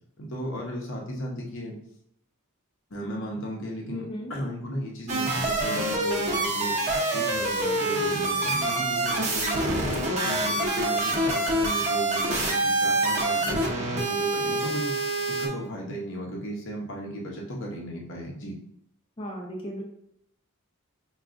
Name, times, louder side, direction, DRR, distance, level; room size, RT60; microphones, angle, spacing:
voice 1, 0.2-1.8 2.9-4.0 4.3-6.8 7.1-9.8 10.1-14.9 15.3-18.5, right 1 dB, 60° left, -1 dB, 0.9 m, -35 dB
voice 2, 3.9-4.3 19.2-19.8, equal, 25° left, -2 dB, 0.6 m, -35 dB
sound 1, 5.1-15.5, right 2 dB, 30° right, 0.7 m, -26 dB
5.9 x 2.4 x 2.5 m, 0.74 s
head